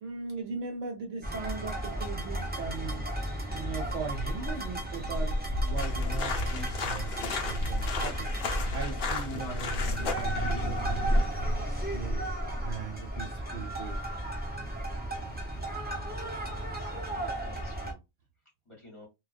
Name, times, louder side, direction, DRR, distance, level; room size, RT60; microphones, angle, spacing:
voice 1, 0.0-3.0 3.5-5.4 5.6-8.3 8.7-12.2 12.6-14.0, right 5 dB, 70° right, 1.1 m, -39 dB
sound 1, 1.2-17.9, right 1 dB, 15° right, 0.3 m, -34 dB
Dog / Bird, 4.0-10.2, left 1 dB, 50° right, 0.9 m, -34 dB
sound 2, 5.8-11.3, left 4 dB, 55° left, 0.7 m, -36 dB
voice 2, 16.1-18.0 18.6-19.1, left 1 dB, 25° left, 0.9 m, -53 dB
2.3 x 2.2 x 2.4 m
omnidirectional pair, 1.4 m